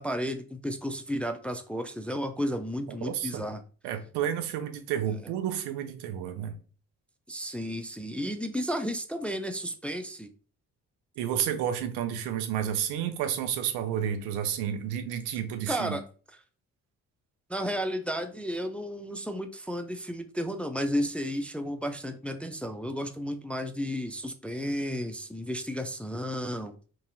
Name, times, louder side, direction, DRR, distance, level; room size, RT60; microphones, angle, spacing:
voice 1, 0.0-3.6 7.3-10.3 15.7-16.0 17.5-26.7, equal, 5° left, 0.3 m, -33 dB
voice 2, 3.0-3.4 3.8-6.6 11.2-16.0, right 9 dB, 85° right, 0.5 m, -31 dB
3.0 x 2.7 x 2.5 m
hypercardioid pair, 45°, 39 cm